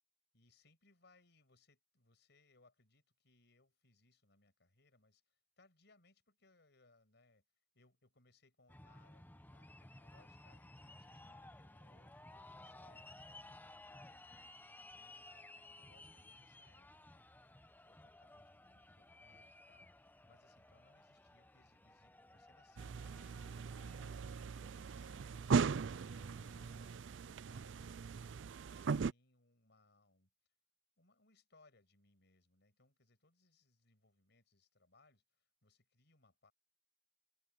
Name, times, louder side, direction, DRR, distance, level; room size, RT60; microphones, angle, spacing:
voice 1, 0.3-7.4 7.7-30.3 31.0-36.5, left 2 dB, 65° left, 6.6 m, -72 dB
sound 1, 8.7-26.8, left 2 dB, 10° left, 1.0 m, -58 dB
sound 2, 22.8-29.1, right 5 dB, 75° right, 0.4 m, -39 dB
head